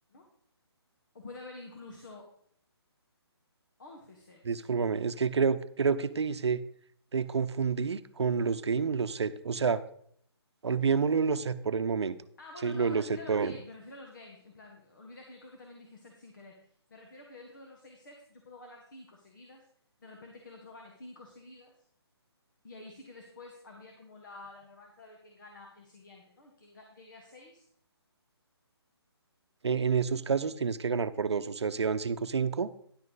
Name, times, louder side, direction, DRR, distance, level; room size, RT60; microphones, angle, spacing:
voice 1, 1.1-2.3 3.8-4.6 12.4-19.6 20.0-21.7 22.6-27.7, left 2 dB, 45° left, 1 dB, 1.5 m, -49 dB
voice 2, 4.5-6.6 7.1-9.8 10.6-12.2 12.6-13.0 13.3-13.5 29.6-32.7, right 5 dB, 80° right, 12 dB, 0.7 m, -28 dB
10.5 x 7.5 x 4.0 m, 0.64 s
hypercardioid pair, 170°, 14 cm